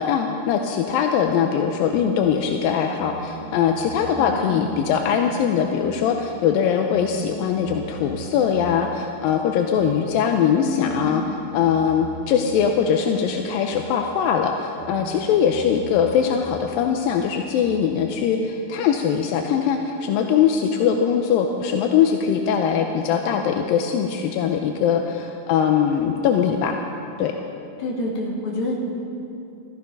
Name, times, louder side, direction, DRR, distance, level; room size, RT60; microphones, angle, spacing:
voice 1, 0.0-11.2 11.5-26.8 27.2-27.3, left 7 dB, 85° left, 4 dB, 2.4 m, -21 dB
sound 1, 1.9-2.3 3.0-4.9 5.8-6.3 6.9-8.8 9.8-10.2 10.9-12.8 13.7-14.1 14.8-16.7 17.6-18.1, right 2 dB, 65° right, 3.4 m, -41 dB
voice 2, 4.2-5.1 10.6-11.4 27.8-28.8, left 2 dB, 55° left, -2 dB, 3.3 m, -28 dB
15.5 x 15.0 x 5.4 m, 2.8 s
omnidirectional pair, 4.1 m